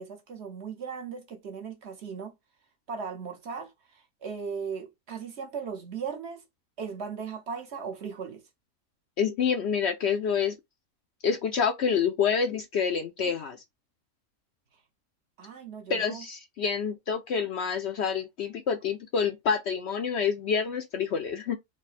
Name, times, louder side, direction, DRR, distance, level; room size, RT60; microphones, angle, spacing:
voice 1, 0.0-2.3 2.9-6.4 6.8-8.4 15.4-16.2, right 6 dB, 55° right, 1.0 m, -37 dB
voice 2, 9.2-10.6 11.2-13.6 15.9-21.6, left 6 dB, 65° left, 0.7 m, -27 dB
4.7 x 2.1 x 4.2 m
omnidirectional pair, 1.5 m